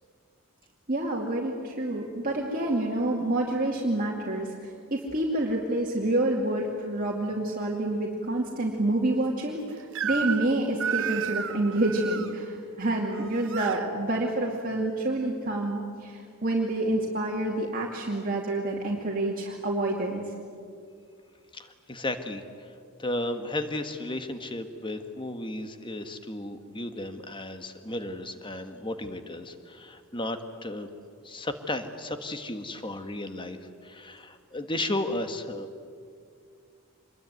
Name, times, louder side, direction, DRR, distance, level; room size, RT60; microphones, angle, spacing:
voice 1, 0.9-4.5 4.9-20.2, right 1 dB, 40° right, -2 dB, 2.4 m, -28 dB
Crying sobbing / Screech, 10.0-10.5 10.8-12.3 13.1-13.8, right 7 dB, 60° right, 1.0 m, -31 dB
voice 2, 21.5-22.7 23.0-30.9 31.2-35.8, left 1 dB, 20° left, 8 dB, 1.5 m, -34 dB
25.5 x 21.5 x 9.5 m, 2.3 s
head